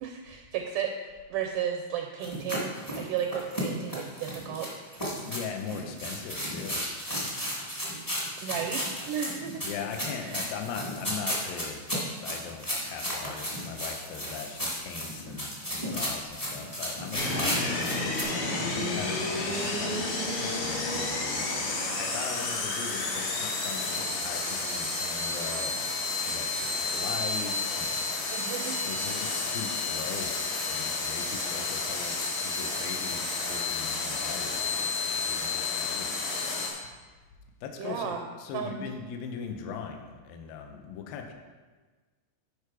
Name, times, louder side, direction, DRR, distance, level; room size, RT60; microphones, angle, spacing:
voice 1, 0.0-1.0 1.3-4.7 8.4-9.6 10.2-10.4 28.3-28.8 37.8-38.3 38.5-38.8, right 8 dB, 85° right, 4 dB, 1.8 m, -33 dB
sound 1, 2.2-18.2, equal, 15° left, 0.6 m, -34 dB
voice 2, 5.2-6.8 9.6-11.8 12.2-28.5 28.8-30.4 30.7-36.1 36.4-36.6 37.6-41.3, left 6 dB, 75° left, 4 dB, 2.4 m, -40 dB
sound 2, 17.1-36.7, left 3 dB, 60° left, 2.7 m, -31 dB
11.5 x 5.1 x 4.7 m, 1.4 s
omnidirectional pair, 4.4 m